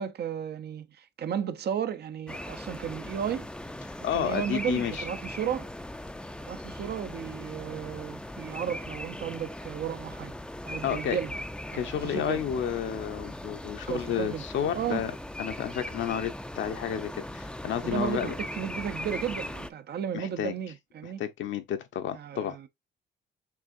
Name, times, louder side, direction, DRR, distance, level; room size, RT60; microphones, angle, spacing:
voice 1, 0.0-3.5 4.1-5.7 6.4-10.4 10.6-11.3 11.7-12.4 13.9-14.4 14.7-15.0 17.8-21.2 22.1-22.7, right 9 dB, 55° right, 0.6 m, -34 dB
sound 1, 2.3-19.7, left 1 dB, 5° left, 0.4 m, -39 dB
voice 2, 4.0-5.0 10.8-11.2 11.7-15.1 15.4-18.3 20.1-20.5 21.2-22.6, left 9 dB, 70° left, 0.9 m, -31 dB
6.0 x 3.5 x 2.5 m
cardioid pair, 90°, 20 cm